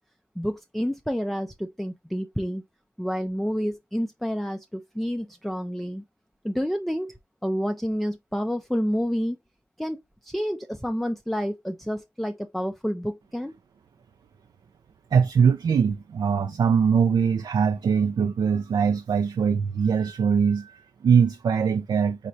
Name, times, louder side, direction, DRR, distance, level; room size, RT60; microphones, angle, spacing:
voice 1, 0.4-2.6 3.0-6.0 6.4-7.1 7.4-9.4 9.8-10.0 10.2-13.5, equal, ahead, 0.4 m, -29 dB
voice 2, 15.1-22.3, right 6 dB, 65° right, 0.4 m, -22 dB
4.8 x 3.1 x 2.6 m
cardioid pair, 65°, 8 cm